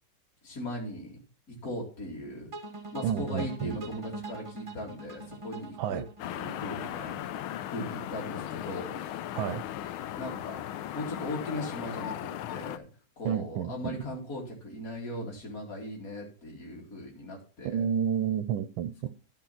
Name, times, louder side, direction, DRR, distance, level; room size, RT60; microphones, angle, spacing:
voice 1, 0.4-1.2 1.5-2.5 2.9-7.2 7.7-9.0 10.2-10.6 10.9-12.8 13.2-17.8, left 1 dB, 45° left, 3.1 m, -38 dB
sound 1, 2.5-7.6, right 1 dB, 15° right, 1.7 m, -42 dB
voice 2, 3.0-3.8 5.8-6.1 9.3-9.6 13.2-14.0 17.6-19.1, right 9 dB, 80° right, 1.5 m, -30 dB
sound 2, 6.2-12.8, left 12 dB, 85° left, 1.5 m, -37 dB
12.5 x 4.8 x 5.8 m
omnidirectional pair, 2.2 m